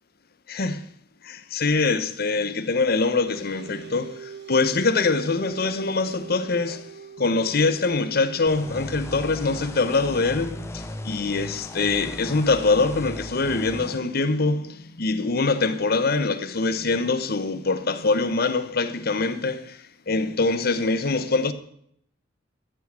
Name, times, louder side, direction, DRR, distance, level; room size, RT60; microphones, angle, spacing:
voice 1, 0.5-0.8 1.2-6.9 7.2-19.8 20.1-21.5, left 3 dB, 55° left, 0.9 m, -24 dB
sound 1, 2.7-13.6, right 6 dB, 65° right, 1.0 m, -45 dB
sound 2, 8.5-14.0, left 1 dB, 15° left, 0.8 m, -37 dB
13.5 x 6.1 x 7.6 m
head